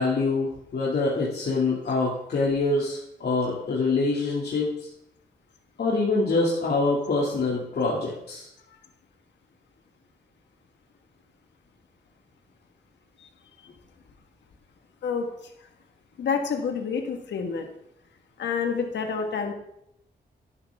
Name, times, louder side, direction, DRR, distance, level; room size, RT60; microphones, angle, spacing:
voice 1, 0.0-4.9 5.8-8.5, left 3 dB, 65° left, -4 dB, 2.4 m, -25 dB
voice 2, 15.0-15.5 16.2-17.7 18.4-19.5, left 5 dB, 90° left, 4 dB, 1.5 m, -28 dB
12.0 x 11.5 x 3.5 m, 0.78 s
cardioid pair, 80°, 18 cm